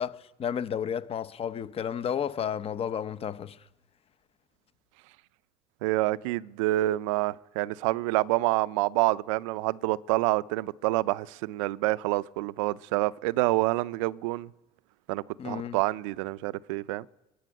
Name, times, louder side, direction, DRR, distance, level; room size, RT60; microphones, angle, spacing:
voice 1, 0.0-3.6 15.4-15.8, left 8 dB, 35° left, 0.8 m, -32 dB
voice 2, 5.8-14.5 15.1-17.1, right 18 dB, 90° right, 0.5 m, -27 dB
22.5 x 8.5 x 6.4 m
supercardioid pair, 100°, 16 cm